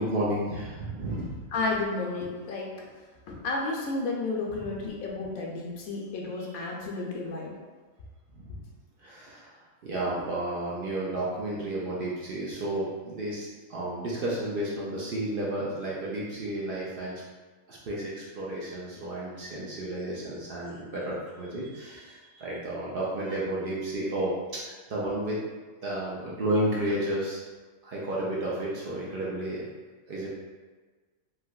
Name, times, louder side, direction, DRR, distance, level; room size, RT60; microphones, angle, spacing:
voice 1, 0.0-1.5 4.5-4.6 6.3-6.5 8.3-8.6 9.0-17.2 17.7-25.4 25.8-27.4 27.8-29.6 30.1-30.3, right 1 dB, 75° right, -6 dB, 0.5 m, -32 dB
voice 2, 1.5-2.7 3.3-7.5, left 3 dB, 80° left, -2 dB, 1.0 m, -32 dB
3.2 x 2.8 x 2.3 m, 1.4 s
omnidirectional pair, 1.5 m